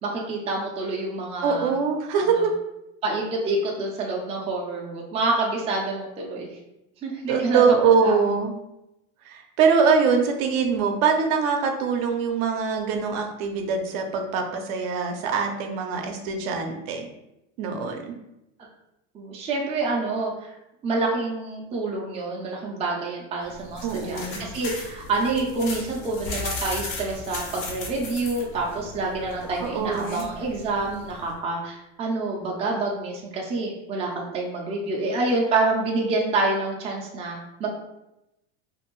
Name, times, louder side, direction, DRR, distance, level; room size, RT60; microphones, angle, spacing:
voice 1, 0.0-1.7 2.2-2.4 3.0-6.5 7.0-7.7 8.0-8.2 19.1-20.3 20.8-37.7, right 3 dB, 15° right, -2 dB, 0.4 m, -27 dB
voice 2, 1.4-2.5 7.3-8.5 9.3-17.1 17.6-18.1 23.8-24.4 29.6-30.3, right 5 dB, 60° right, 4 dB, 0.6 m, -23 dB
sound 1, 23.4-31.3, left 3 dB, 85° left, 1.0 m, -37 dB
sound 2, 26.3-29.0 29.3-29.5 32.4-32.5 32.8-32.9, left 4 dB, 65° left, 0.6 m, -40 dB
2.6 x 2.5 x 2.9 m, 0.89 s
supercardioid pair, 120°, 37 cm